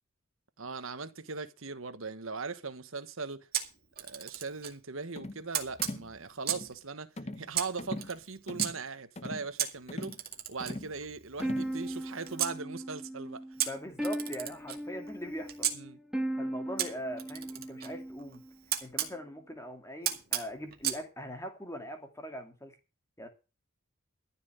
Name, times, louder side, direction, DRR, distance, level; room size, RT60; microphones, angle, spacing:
voice 1, 0.6-3.5 4.0-10.2 10.5-13.4 15.7-16.0, right 4 dB, 70° right, 1.3 m, -40 dB
Camera, 3.5-4.8 5.5-6.8 7.5-8.7 9.6-12.6 13.6-15.8 16.8-19.1 20.0-21.0, right 11 dB, 45° right, 2.2 m, -35 dB
sound 1, 5.1-5.4 5.8-6.1 6.5-6.7 7.2-7.5 7.8-8.1 8.5-8.8 9.1-9.5 9.9-10.2 10.6-10.9 11.4-11.7, left 1 dB, 30° left, 0.9 m, -40 dB
sound 2, 11.4-18.5, right 1 dB, 5° right, 1.3 m, -38 dB
voice 2, 13.6-15.7 16.4-18.4 18.8-22.7 23.2-23.3, equal, 15° left, 2.5 m, -41 dB
14.0 x 5.8 x 7.9 m
head